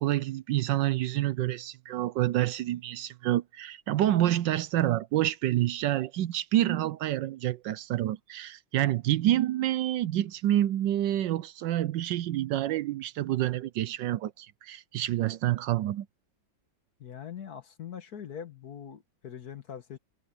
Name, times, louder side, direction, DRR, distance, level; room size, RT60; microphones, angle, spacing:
voice 1, 0.0-16.1, right 13 dB, 75° right, 1.2 m, -28 dB
voice 2, 17.0-20.0, left 8 dB, 55° left, 1.7 m, -42 dB
omnidirectional pair, 2.1 m